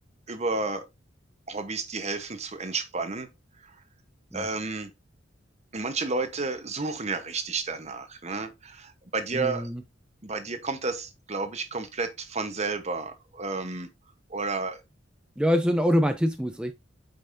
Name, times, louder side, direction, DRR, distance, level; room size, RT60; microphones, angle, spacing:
voice 1, 0.3-0.9 1.5-3.3 3.6-3.7 4.3-4.9 5.7-9.7 10.2-13.9 14.3-14.8, right 3 dB, 35° right, 1.1 m, -31 dB
voice 2, 9.3-9.8 15.4-16.7, equal, 5° right, 0.5 m, -24 dB
8.7 x 5.6 x 2.7 m
head